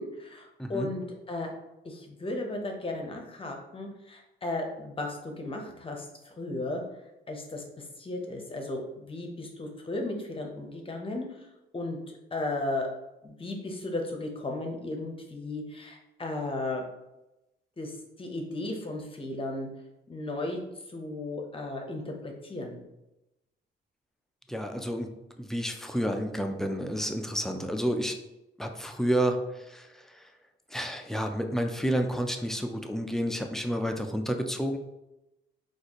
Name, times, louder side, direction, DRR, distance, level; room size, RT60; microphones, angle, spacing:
voice 1, 0.0-1.5 1.8-6.8 7.3-11.3 11.7-12.9 13.2-16.8 17.8-19.7 20.1-20.6 20.9-22.8, left 2 dB, 25° left, 2 dB, 0.8 m, -35 dB
voice 2, 0.6-0.9 24.5-25.1 25.4-28.2 28.6-30.3 30.7-34.8, equal, ahead, 5 dB, 0.4 m, -30 dB
4.1 x 2.5 x 2.9 m, 0.94 s
cardioid pair, 90°, 20 cm